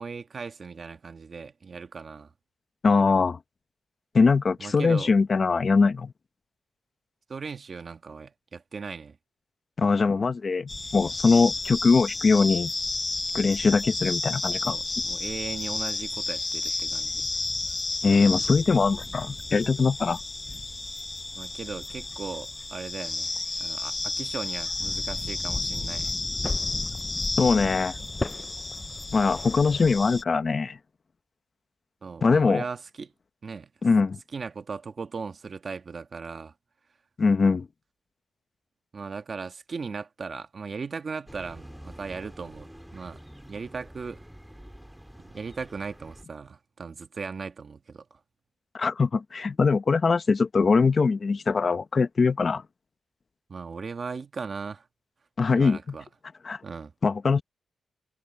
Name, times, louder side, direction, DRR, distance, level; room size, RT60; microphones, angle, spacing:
voice 1, 0.0-2.3 4.6-5.1 7.3-9.2 14.6-17.2 21.3-23.3 23.6-26.1 32.0-33.1 33.4-33.7 34.3-36.5 38.9-43.2 43.5-44.2 45.3-48.0 53.5-54.8 55.5-56.1 56.6-56.9, right 5 dB, 40° right, 1.3 m, -37 dB
voice 2, 2.8-3.4 4.1-6.1 9.8-12.7 13.3-14.8 18.0-20.2 27.4-28.0 29.1-30.8 32.2-32.6 33.8-34.2 37.2-37.7 48.7-52.6 55.4-55.8 56.4-56.6 57.0-57.4, left 4 dB, 35° left, 0.8 m, -22 dB
sound 1, 10.7-30.2, left 2 dB, 20° left, 0.3 m, -32 dB
sound 2, 41.3-46.2, equal, 5° right, 2.9 m, -47 dB
wide cardioid pair, 145°, 0 cm